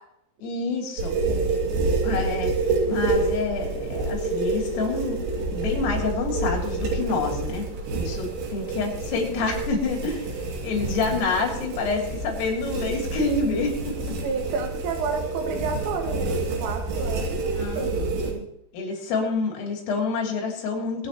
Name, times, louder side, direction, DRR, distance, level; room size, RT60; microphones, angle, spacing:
voice 1, 0.4-1.2 2.0-2.5 2.9-5.2 5.5-7.7 8.0-14.0 17.6-18.1 18.7-21.1, left 4 dB, 85° left, 0 dB, 5.7 m, -28 dB
sound 1, 1.0-18.3, right 3 dB, 65° right, 4.5 m, -28 dB
voice 2, 1.3-1.7 8.5-8.9 14.2-18.5, right 5 dB, 85° right, 4 dB, 4.3 m, -31 dB
26.0 x 9.0 x 3.0 m, 0.79 s
omnidirectional pair, 5.7 m